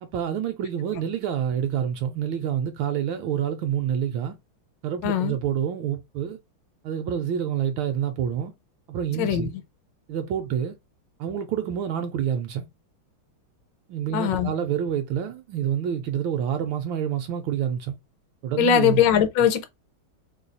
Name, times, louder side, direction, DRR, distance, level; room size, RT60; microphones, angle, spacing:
voice 1, 0.0-4.4 4.8-6.4 6.8-8.5 8.9-9.5 10.1-10.8 11.2-12.7 13.9-17.9 18.4-19.0, right 9 dB, 75° right, 1.3 m, -27 dB
voice 2, 5.0-5.4 9.2-9.5 14.1-14.5 18.6-19.7, left 9 dB, 70° left, 1.2 m, -21 dB
3.4 x 2.3 x 3.9 m
omnidirectional pair, 2.2 m